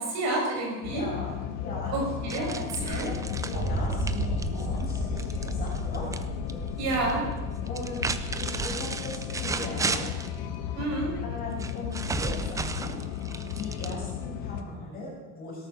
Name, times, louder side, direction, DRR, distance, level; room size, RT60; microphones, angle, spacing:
voice 1, 0.0-1.0 1.9-3.1 6.8-7.2 10.7-11.1, right 2 dB, 55° right, -1 dB, 5.8 m, -29 dB
sound 1, 0.8-14.6, left 9 dB, 80° left, 1.7 m, -35 dB
voice 2, 0.9-1.9 2.4-6.1 7.6-8.0 8.3-10.1 10.7-11.0 11.2-13.0 13.5-15.7, left 2 dB, 25° left, -5 dB, 7.2 m, -39 dB
sound 2, 2.3-6.2 6.5-7.1 7.7-10.3 11.6-14.3, right 4 dB, 10° right, 0.4 m, -34 dB
sound 3, 2.8-10.0 11.1-11.2, right 1 dB, 25° right, 7.6 m, -34 dB
18.0 x 13.0 x 5.8 m, 1.2 s
cardioid pair, 180°, 33 cm